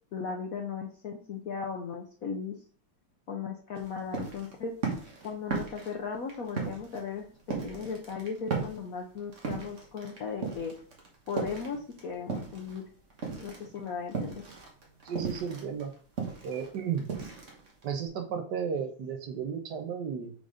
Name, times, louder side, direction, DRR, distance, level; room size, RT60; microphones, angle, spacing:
voice 1, 0.1-2.6 3.3-4.7 5.2-7.3 7.6-10.7 11.3-12.8 13.4-14.4, left 5 dB, 80° left, 3 dB, 0.7 m, -37 dB
sound 1, 3.7-12.8 13.1-18.1, right 5 dB, 40° right, 1.5 m, -36 dB
voice 2, 15.0-15.9 16.4-17.1 17.8-20.3, right 7 dB, 60° right, 5 dB, 1.4 m, -33 dB
5.1 x 4.0 x 4.9 m, 0.43 s
omnidirectional pair, 2.4 m